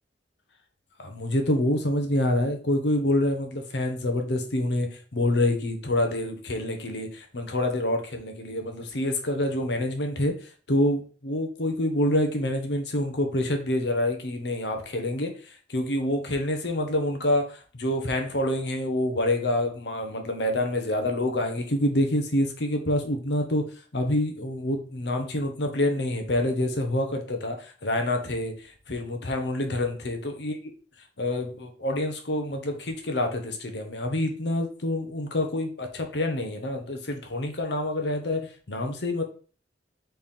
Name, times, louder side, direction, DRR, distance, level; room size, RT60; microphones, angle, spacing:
voice 1, 1.0-30.6 31.2-39.2, left 1 dB, 75° left, 5 dB, 1.0 m, -27 dB
4.3 x 3.4 x 3.6 m, 0.39 s
head